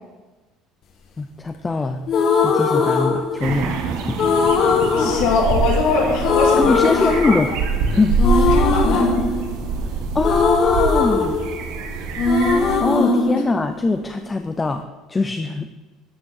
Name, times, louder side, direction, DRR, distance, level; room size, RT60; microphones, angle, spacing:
voice 1, 1.2-2.0 2.4-4.2 5.0-5.1 6.6-7.6 7.9-8.2 10.1-11.4 12.8-15.7, left 3 dB, 15° left, 7 dB, 0.4 m, -22 dB
sound 1, 2.1-3.7 4.2-5.9 6.2-7.8 8.2-11.9 12.2-14.2, left 4 dB, 40° left, 1.6 m, -20 dB
sound 2, 3.4-12.8, right 4 dB, 65° right, 1.5 m, -24 dB
voice 2, 5.0-7.4 8.5-9.1, left 4 dB, 75° left, -1 dB, 2.3 m, -22 dB
13.0 x 7.1 x 6.4 m, 1.2 s
cardioid pair, 175°, 0 cm